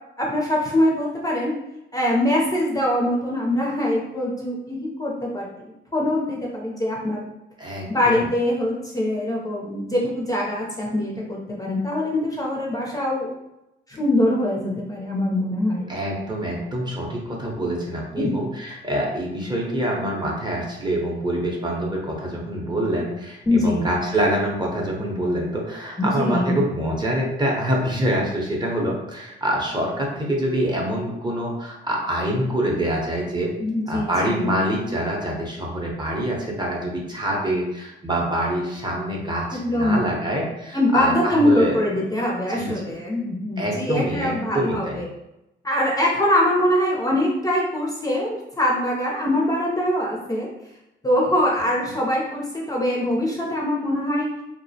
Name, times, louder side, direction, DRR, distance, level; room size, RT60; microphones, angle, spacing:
voice 1, 0.2-1.5 1.9-7.3 7.9-13.3 13.9-15.9 18.2-18.3 23.5-23.9 26.0-26.6 33.6-34.6 39.5-40.0 40.7-45.1 45.6-50.5 51.0-54.3, left 1 dB, 20° left, -3 dB, 0.5 m, -23 dB
voice 2, 7.6-8.3 15.9-33.5 33.9-41.8 42.5-43.0 43.6-45.0, right 1 dB, 20° right, -2 dB, 0.6 m, -25 dB
2.3 x 2.0 x 2.6 m, 0.90 s
cardioid pair, 90°, 20 cm